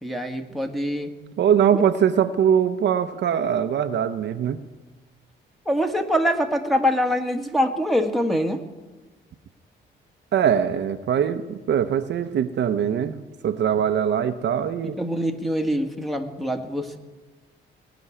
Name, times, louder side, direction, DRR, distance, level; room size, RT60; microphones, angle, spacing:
voice 1, 0.0-1.1 5.6-8.6 14.8-17.0, equal, ahead, 2 dB, 1.6 m, -24 dB
voice 2, 1.4-4.6 10.3-15.0, right 8 dB, 60° right, 9 dB, 0.8 m, -22 dB
18.5 x 6.2 x 9.8 m, 1.2 s
cardioid pair, 90°, 20 cm